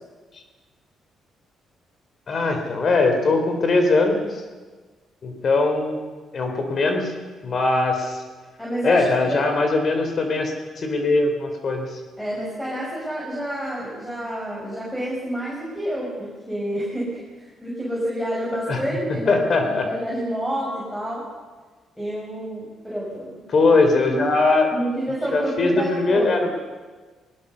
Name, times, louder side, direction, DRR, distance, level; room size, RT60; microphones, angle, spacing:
voice 1, 2.3-4.4 5.2-6.0 6.3-7.1 7.4-8.2 8.8-12.0 18.7-18.8 19.1-19.9 23.5-24.7 25.3-26.5, left 3 dB, 50° left, 5 dB, 3.8 m, -21 dB
voice 2, 8.6-9.4 12.2-21.2 22.0-23.4 24.1-24.2 24.7-26.5, right 1 dB, 5° left, -5 dB, 6.4 m, -29 dB
20.5 x 19.0 x 6.9 m, 1.3 s
cardioid pair, 90°, 0 cm